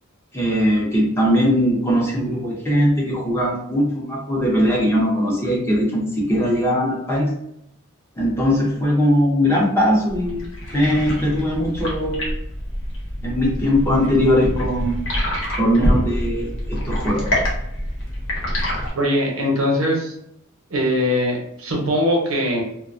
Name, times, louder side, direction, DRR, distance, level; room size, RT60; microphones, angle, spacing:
voice 1, 0.3-7.3 8.2-10.4 10.7-12.3 13.2-15.0 15.6-17.3, equal, 10° left, -4 dB, 0.6 m, -20 dB
sound 1, 10.1-18.9, equal, 65° left, 0.9 m, -26 dB
voice 2, 18.9-20.1 20.7-22.6, equal, 80° right, -1 dB, 0.8 m, -21 dB
2.4 x 2.1 x 2.5 m, 0.77 s
head